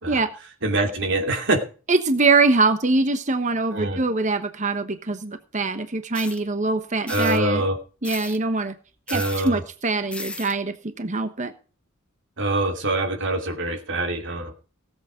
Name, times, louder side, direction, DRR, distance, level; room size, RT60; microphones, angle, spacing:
voice 1, 0.6-1.6 3.7-4.0 7.1-7.8 9.1-9.6 12.4-14.5, right 2 dB, 60° right, 3 dB, 2.6 m, -24 dB
voice 2, 1.9-7.6 8.0-8.7 9.1-11.5, right 3 dB, 35° right, 10 dB, 1.1 m, -23 dB
sound 1, 6.1-6.4 7.1-7.4 8.0-8.4 9.1-9.5 10.1-10.5, left 2 dB, 5° left, 0.9 m, -35 dB
17.5 x 8.2 x 5.1 m, 0.37 s
head